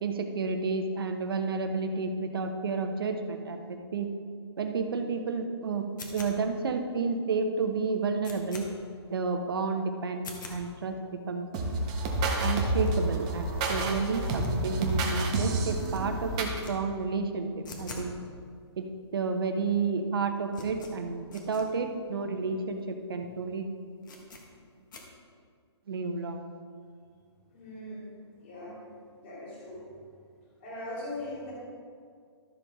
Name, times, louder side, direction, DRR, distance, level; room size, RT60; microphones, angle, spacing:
voice 1, 0.0-4.1 4.6-5.8 6.1-8.6 9.1-11.5 12.4-18.1 18.8-18.9 19.1-23.6 25.9-26.4, right 4 dB, 55° right, 5 dB, 1.0 m, -31 dB
sound 1, 6.0-6.6 7.1-7.2 7.6-7.7 7.9-8.7 9.1-9.2 9.5-9.7 10.1-10.6 11.1-11.2 11.4-11.5 11.7-11.8 12.1-12.2 12.4-13.7 14.1-15.5 15.7-16.0 16.4-16.7 17.0-18.1 18.4-18.5 19.1-19.2 19.4-19.8 20.0-21.7 22.1-22.2 22.4-22.5 23.0-23.2 23.4-23.5 24.0-24.4 24.9-25.0, left 3 dB, 45° left, 1.5 m, -46 dB
sound 2, 11.5-16.6, right 2 dB, 15° right, 0.5 m, -29 dB
voice 2, 27.5-28.0 28.4-28.8 29.2-29.8 30.6-31.5, left 1 dB, 25° left, -6 dB, 2.7 m, -40 dB
12.5 x 7.1 x 3.6 m, 2.1 s
hypercardioid pair, 175°, 15 cm